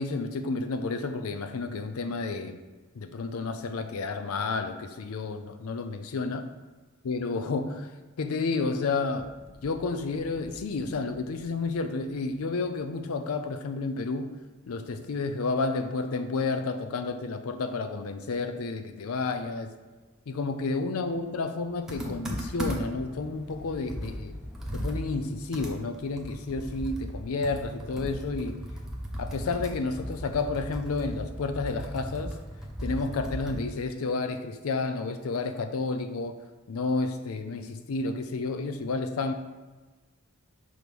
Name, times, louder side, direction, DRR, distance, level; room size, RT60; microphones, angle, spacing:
voice 1, 0.0-2.6 3.0-6.5 7.0-7.9 8.2-9.3 9.6-14.4 14.7-19.7 20.3-24.3 24.7-28.6 29.2-32.3 32.8-36.4 36.7-39.3, left 3 dB, 85° left, 0.5 m, -31 dB
sound 1, 9.1-13.0 20.0-25.4, equal, 20° left, 1.1 m, -47 dB
Computer keyboard, 21.9-23.1 23.5-23.6 23.9-33.8, equal, 5° right, 0.8 m, -36 dB
6.2 x 3.1 x 5.2 m
head